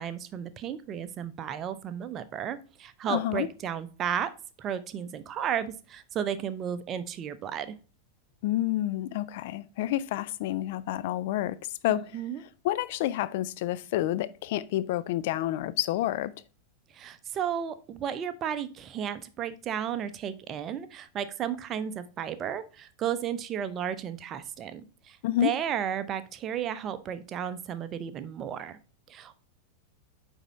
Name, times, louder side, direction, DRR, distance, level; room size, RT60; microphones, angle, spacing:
voice 1, 0.0-4.3 4.6-7.8 11.9-12.4 16.9-28.8 29.1-29.4, right 9 dB, 30° right, 0.6 m, -33 dB
voice 2, 3.1-3.5 8.4-12.1 12.6-16.3 25.2-25.5, left 13 dB, 50° left, 0.3 m, -29 dB
9.0 x 3.6 x 4.1 m
figure-of-eight pair, 90°, 0 cm